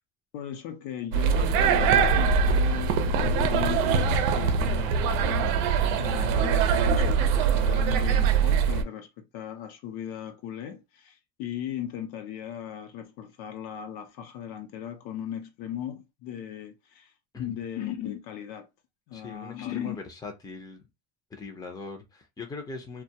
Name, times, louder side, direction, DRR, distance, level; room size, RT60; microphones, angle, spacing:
voice 1, 0.3-17.1 17.4-18.7 19.1-20.0, left 10 dB, 70° left, 0.7 m, -37 dB
sound 1, 1.1-8.8, right 6 dB, 90° right, 0.6 m, -23 dB
voice 2, 19.1-20.8 21.3-23.0, left 4 dB, 10° left, 0.5 m, -40 dB
2.3 x 2.2 x 2.7 m
cardioid pair, 125°, 39 cm